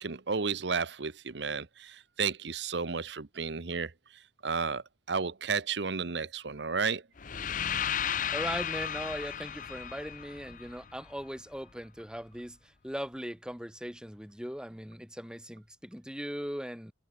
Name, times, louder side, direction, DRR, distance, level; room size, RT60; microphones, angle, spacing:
voice 1, 0.0-7.0, right 5 dB, 65° right, 0.9 m, -33 dB
sound 1, 7.2-11.2, left 8 dB, 45° left, 0.7 m, -34 dB
voice 2, 8.3-16.9, equal, 5° right, 3.9 m, -39 dB
head